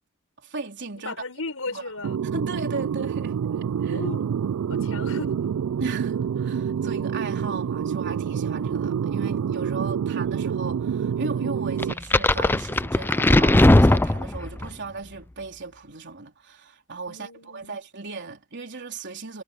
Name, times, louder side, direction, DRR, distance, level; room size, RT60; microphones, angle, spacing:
voice 1, 0.4-1.1 1.7-3.4 3.8-4.0 5.8-19.4, right 3 dB, 55° right, 3.9 m, -36 dB
voice 2, 0.9-2.2 3.9-4.2 4.7-5.3 9.7-10.2 17.1-17.8, left 3 dB, 70° left, 6.6 m, -36 dB
sound 1, 2.0-11.9, right 7 dB, 75° right, 0.3 m, -27 dB
sound 2, 11.8-14.7, left 1 dB, 10° left, 0.4 m, -18 dB
head